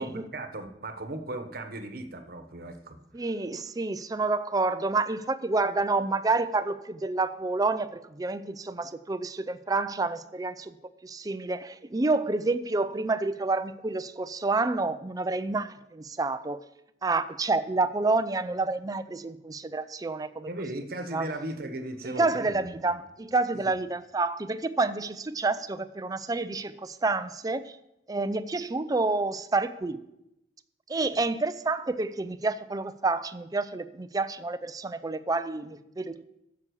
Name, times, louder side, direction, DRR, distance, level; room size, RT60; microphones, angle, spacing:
voice 1, 0.0-3.0 20.5-23.0 23.5-23.7, right 1 dB, 55° right, 1.2 m, -37 dB
voice 2, 3.1-10.7 11.0-16.6 17.0-20.5 21.1-21.3 22.0-27.8 28.1-30.0 30.9-36.2, right 3 dB, 20° right, 0.4 m, -29 dB
9.5 x 7.0 x 6.9 m
head